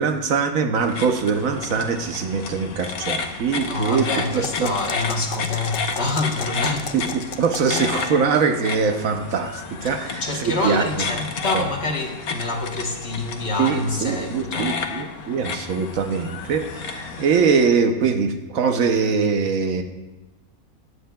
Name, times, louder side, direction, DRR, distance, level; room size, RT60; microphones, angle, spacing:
voice 1, 0.0-4.1 4.3-4.7 6.9-11.1 11.5-11.6 13.6-19.8, right 5 dB, 70° right, 6 dB, 1.1 m, -22 dB
sound 1, 0.8-17.7, left 5 dB, 85° left, 1.3 m, -32 dB
voice 2, 3.6-6.9 10.0-14.8, left 2 dB, 50° left, 1 dB, 1.4 m, -26 dB
sound 2, 4.2-8.2, left 6 dB, 70° left, 0.5 m, -35 dB
14.5 x 9.4 x 2.3 m, 1.1 s
omnidirectional pair, 1.5 m